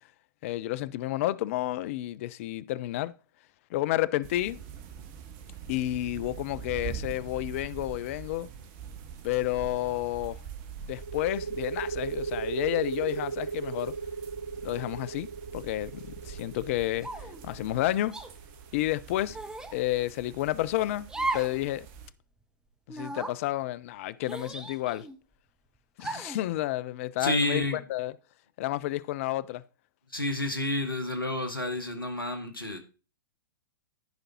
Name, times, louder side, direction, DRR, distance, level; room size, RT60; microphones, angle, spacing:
voice 1, 0.4-3.1 3.7-4.6 5.7-8.5 9.2-10.4 10.9-13.9 14.6-17.1 17.4-18.2 18.7-19.4 19.7-21.1 21.3-21.9 22.9-25.1 26.0-27.6 27.9-28.1 28.6-29.6, left 15 dB, 40° left, 0.4 m, -30 dB
sound 1, 4.2-22.1, right 7 dB, 35° right, 0.9 m, -44 dB
sound 2, 11.0-18.4, right 5 dB, 50° right, 0.6 m, -36 dB
sound 3, 17.0-17.4 18.1-18.3 19.3-19.7 21.1-21.6 21.9-22.0 22.9-23.3 24.2-25.2 26.0-26.4, right 2 dB, 5° right, 0.7 m, -35 dB
voice 2, 27.2-27.8 30.1-32.8, left 1 dB, 80° left, 1.3 m, -30 dB
14.5 x 5.1 x 2.9 m
figure-of-eight pair, 105°, 11 cm